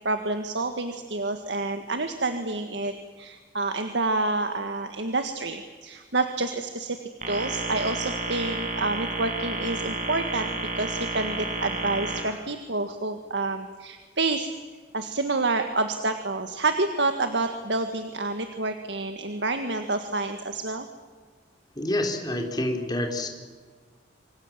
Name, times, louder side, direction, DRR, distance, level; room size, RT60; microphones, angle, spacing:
voice 1, 0.1-7.0 7.3-10.5 10.8-14.5 14.9-20.9, right 3 dB, 75° right, 7 dB, 1.7 m, -28 dB
sound 1, 7.2-12.2, right 3 dB, 40° right, 6.5 m, -31 dB
voice 2, 21.8-23.3, left 1 dB, 25° left, 4 dB, 3.7 m, -27 dB
26.0 x 26.0 x 7.4 m, 1.5 s
head